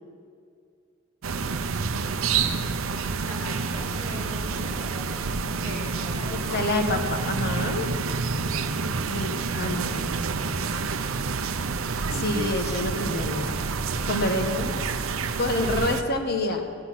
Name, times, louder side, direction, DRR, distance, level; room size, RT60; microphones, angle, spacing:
sound 1, 1.2-16.0, right 4 dB, 80° right, 0.6 m, -28 dB
voice 1, 3.1-6.6, equal, 65° left, -4 dB, 2.7 m, -40 dB
voice 2, 6.5-7.9 9.1-10.2 12.1-13.6 14.0-14.8 15.4-16.6, left 1 dB, 50° left, 4 dB, 1.2 m, -27 dB
15.5 x 9.8 x 5.9 m, 2.3 s
head